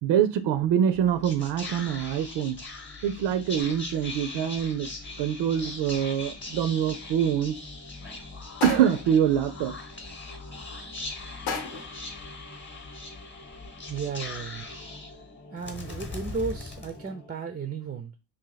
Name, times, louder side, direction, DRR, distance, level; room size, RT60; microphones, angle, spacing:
voice 1, 0.0-2.6 3.0-4.9 5.2-7.6 8.6-9.7, right 9 dB, 85° right, 0.5 m, -25 dB
Whispering, 0.9-17.5, left 3 dB, 30° left, 0.9 m, -40 dB
sound 1, 8.6-9.2 11.5-12.0, left 5 dB, 85° left, 0.8 m, -33 dB
voice 2, 13.9-14.8 15.5-18.2, right 5 dB, 25° right, 0.3 m, -34 dB
2.7 x 2.5 x 3.9 m
cardioid pair, 110°, 41 cm